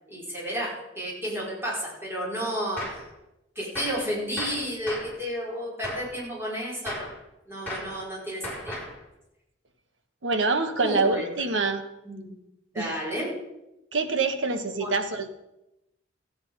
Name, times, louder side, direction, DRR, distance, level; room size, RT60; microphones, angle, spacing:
voice 1, 0.1-2.9 3.6-7.1 7.5-8.8 10.7-11.2 12.0-12.3 12.7-13.4 14.8-14.9, equal, 15° right, -5 dB, 5.1 m, -32 dB
Gunshot gunfire, 2.8-3.1 3.8-4.1 4.4-5.2 5.8-6.1 6.9-7.2 7.7-8.0 8.4-9.0, left 1 dB, 10° left, 4.6 m, -36 dB
voice 2, 10.2-11.8 12.8-13.0 13.9-15.3, right 3 dB, 85° right, 6 dB, 1.4 m, -26 dB
15.0 x 8.8 x 5.4 m, 0.91 s
head